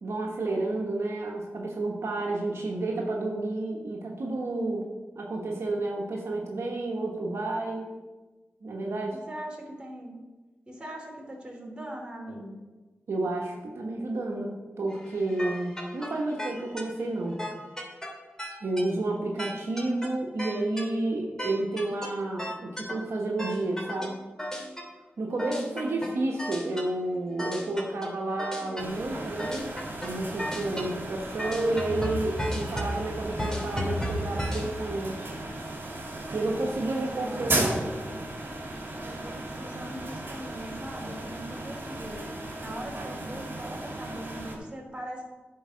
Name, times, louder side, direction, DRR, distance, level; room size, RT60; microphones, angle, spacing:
voice 1, 0.0-7.9 8.6-9.2 13.1-17.4 18.6-24.2 25.2-29.7 29.9-35.3 36.3-37.8, right 2 dB, 70° right, -1 dB, 1.2 m, -31 dB
voice 2, 2.4-2.8 9.3-10.1 10.7-12.6 19.1-19.6 25.5-26.2 36.9-37.6 39.0-42.2 42.6-45.3, right 1 dB, 20° right, -1 dB, 3.1 m, -41 dB
sound 1, 14.9-16.1 16.4-16.8 17.4-18.1 18.4-18.8 19.4-20.1 20.4-20.8 21.4-22.1 22.4-22.9 23.4-24.1 24.4-24.8 25.4-26.1 26.4-26.8 27.4-28.1 28.4-28.8 29.4-30.1 30.4-30.9 31.4-34.7, equal, 10° left, 2.6 m, -33 dB
sound 2, 28.8-44.6, right 2 dB, 50° right, 2.5 m, -35 dB
10.0 x 4.7 x 6.2 m, 1.2 s
cardioid pair, 50°, 5 cm